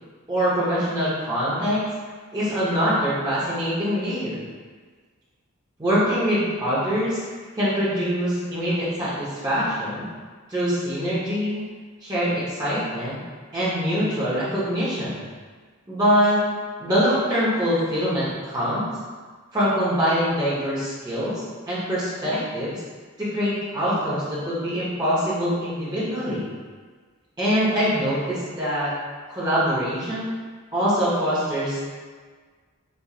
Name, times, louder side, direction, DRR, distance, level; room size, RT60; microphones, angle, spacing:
voice 1, 0.3-1.8 2.3-4.4 5.8-7.2 7.5-10.1 10.5-11.6 12.0-13.2 13.5-15.2 15.9-16.4 16.8-18.9 19.5-21.4 21.7-22.8 23.2-26.5 27.4-28.9 29.3-30.3 30.7-31.8, equal, 20° right, -10 dB, 0.9 m, -24 dB
4.1 x 3.0 x 2.4 m, 1.5 s
head